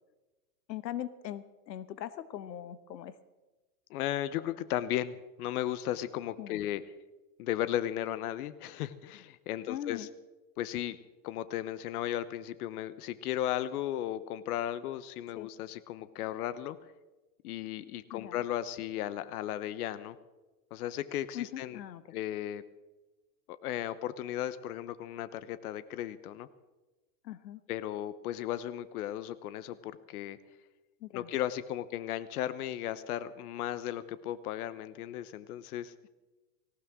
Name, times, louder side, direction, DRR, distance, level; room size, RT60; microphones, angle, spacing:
voice 1, 0.7-3.1 6.4-6.6 9.7-10.1 15.3-15.5 18.1-18.4 21.3-22.0 27.2-27.6 31.0-31.3, left 11 dB, 90° left, 15 dB, 1.2 m, -40 dB
voice 2, 3.9-6.8 7.4-10.1 10.6-11.0 11.2-16.8 17.4-20.2 20.7-21.8 22.1-22.6 23.6-26.5 27.7-30.4 31.1-35.9, left 12 dB, 60° left, 15 dB, 1.0 m, -35 dB
18.5 x 18.0 x 3.7 m, 1.2 s
supercardioid pair, 145°, 50 cm